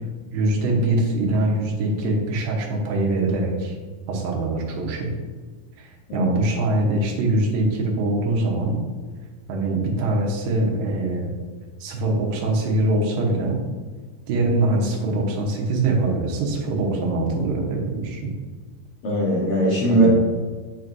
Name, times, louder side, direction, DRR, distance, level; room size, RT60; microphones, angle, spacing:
voice 1, 0.3-3.8 4.1-5.1 5.8-8.8 9.5-11.3 11.8-13.6 14.3-18.3 19.9-20.2, right 2 dB, 80° right, -1 dB, 2.8 m, -23 dB
voice 2, 19.0-20.2, right 1 dB, 55° left, -6 dB, 1.9 m, -19 dB
8.1 x 6.1 x 2.6 m, 1.4 s
omnidirectional pair, 4.0 m